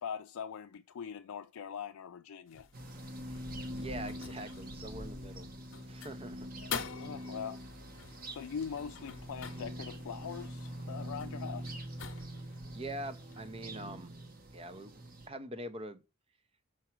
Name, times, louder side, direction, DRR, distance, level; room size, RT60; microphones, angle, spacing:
voice 1, 0.0-2.7 6.6-7.6 8.3-11.8, left 7 dB, 80° left, 0.4 m, -42 dB
sound 1, 2.5-13.7, left 7 dB, 60° left, 0.8 m, -48 dB
sound 2, 2.7-15.3, equal, 40° right, 1.1 m, -44 dB
voice 2, 3.7-5.5 5.9-6.5 12.7-14.1 14.5-15.0 15.3-16.0, right 1 dB, 25° right, 0.6 m, -43 dB
6.0 x 4.5 x 4.5 m
head